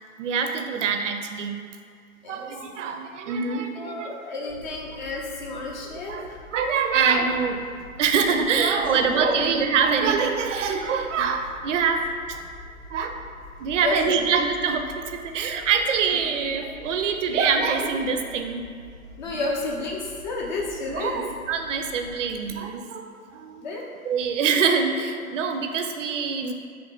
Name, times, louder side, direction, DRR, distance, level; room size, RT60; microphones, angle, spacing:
voice 1, 0.2-1.6 2.3-4.1 5.9-7.7 8.0-12.4 12.9-13.2 13.6-18.8 19.2-19.4 20.9-23.7 24.0-26.5, right 6 dB, 60° right, 6 dB, 0.5 m, -25 dB
voice 2, 3.8-6.4 8.8-9.5 13.8-14.3 16.1-16.2 19.2-21.3 23.6-23.8, left 2 dB, 35° left, -1 dB, 0.5 m, -31 dB
sound 1, 4.5-22.6, left 2 dB, 85° left, 0.6 m, -46 dB
3.8 x 2.8 x 3.5 m, 2.1 s
hypercardioid pair, 135°, 43 cm